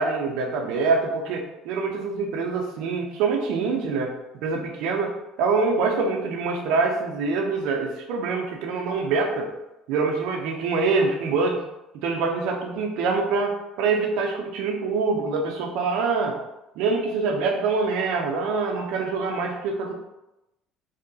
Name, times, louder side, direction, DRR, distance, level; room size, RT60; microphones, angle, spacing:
voice 1, 0.0-5.1 5.4-9.5 9.9-11.6 12.0-16.4 16.8-19.9, right 4 dB, 65° right, 1 dB, 0.5 m, -25 dB
2.7 x 2.1 x 2.6 m, 0.93 s
hypercardioid pair, 60°, 0 cm